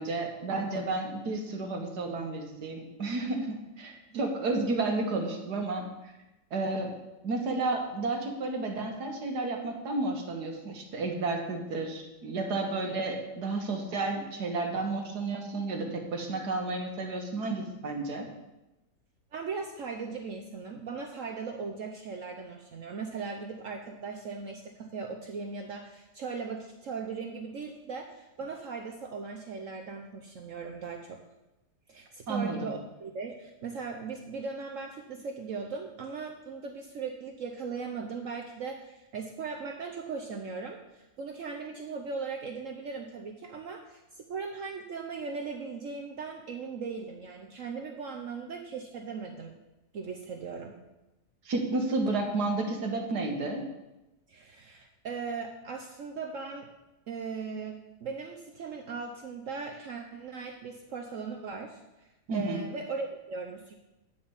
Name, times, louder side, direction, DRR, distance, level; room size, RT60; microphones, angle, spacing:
voice 1, 0.0-6.1 6.5-6.9 7.2-18.3 32.3-32.7 51.5-53.6 62.3-62.6, right 3 dB, 80° right, 2 dB, 2.0 m, -32 dB
voice 2, 19.3-31.2 31.9-49.6 49.9-50.8 54.3-56.7 57.1-63.7, right 5 dB, 60° right, 2 dB, 1.1 m, -38 dB
9.9 x 5.1 x 7.1 m, 0.99 s
omnidirectional pair, 1.7 m